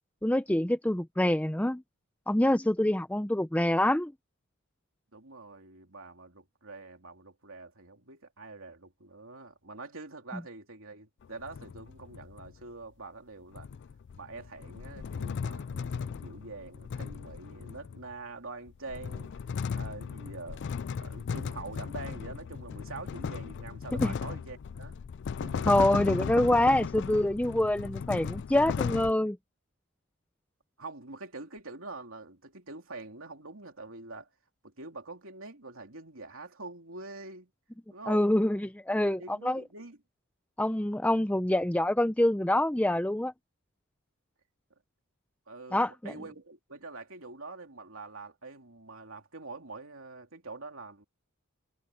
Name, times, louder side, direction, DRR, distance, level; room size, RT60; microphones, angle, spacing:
voice 1, 0.2-1.8 2.3-4.1 24.0-24.1 25.7-29.4 38.1-39.6 40.6-43.3 45.7-46.1, left 1 dB, 5° left, 0.5 m, -26 dB
voice 2, 5.1-13.7 14.2-19.3 19.7-20.6 20.9-25.0 25.4-25.8 30.8-34.3 34.6-37.5 37.9-38.3 39.1-40.0 45.5-51.0, right 3 dB, 65° right, 3.4 m, -45 dB
sound 1, 11.2-12.6 13.5-18.1 18.7-29.1, left 6 dB, 55° left, 0.3 m, -36 dB
head